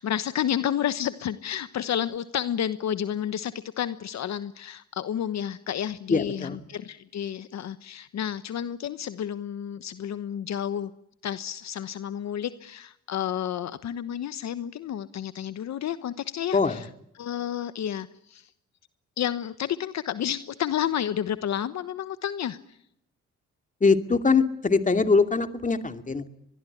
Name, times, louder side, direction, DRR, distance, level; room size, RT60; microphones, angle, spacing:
voice 1, 0.0-10.9 11.2-16.8 17.2-18.5 19.2-22.6, left 10 dB, 65° left, 12 dB, 1.2 m, -30 dB
voice 2, 6.1-6.7 16.5-16.8 23.8-26.3, left 4 dB, 25° left, 8 dB, 2.6 m, -22 dB
24.5 x 21.0 x 10.0 m, 0.76 s
cardioid pair, 90°, 30 cm